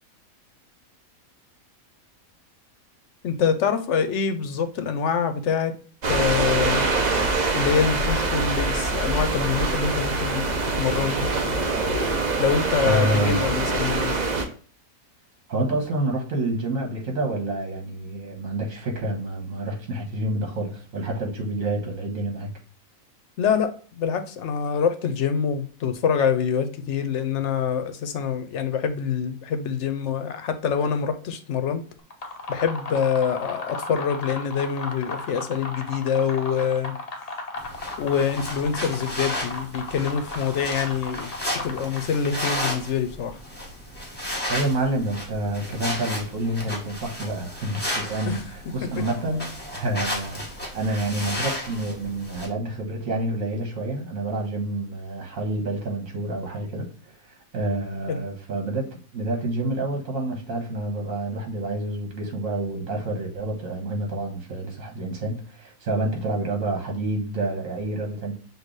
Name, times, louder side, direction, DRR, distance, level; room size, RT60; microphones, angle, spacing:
voice 1, 3.2-5.7 6.1-6.8 7.5-11.2 12.4-14.2 23.4-31.8 32.5-37.0 38.0-41.3 41.6-43.4 48.3-48.4 58.1-58.2, left 7 dB, 60° left, 0.9 m, -25 dB
sound 1, 6.0-14.5, right 3 dB, 40° right, 0.7 m, -24 dB
voice 2, 12.8-13.4 15.5-22.5 44.5-58.9 59.1-68.3, right 1 dB, 65° right, 1.8 m, -28 dB
sound 2, 32.0-42.3, left 2 dB, 40° left, 0.5 m, -36 dB
sound 3, 37.6-52.5, left 1 dB, 5° left, 1.2 m, -33 dB
6.2 x 2.6 x 3.2 m
omnidirectional pair, 1.5 m